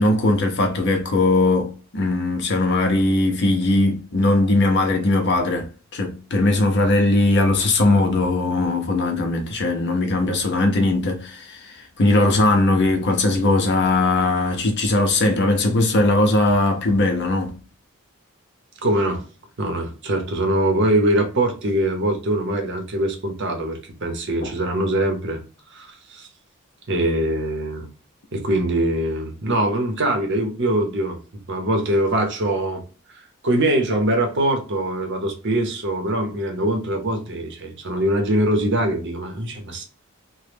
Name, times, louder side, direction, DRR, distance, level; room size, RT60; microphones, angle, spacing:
voice 1, 0.0-17.5 24.4-24.5, left 2 dB, 50° left, 0.6 m, -19 dB
voice 2, 18.8-19.2 19.6-25.4 25.7-26.3 26.9-27.9 28.3-31.2 31.5-32.8 33.1-39.8, right 1 dB, 50° right, 0.8 m, -23 dB
3.0 x 2.1 x 3.3 m
head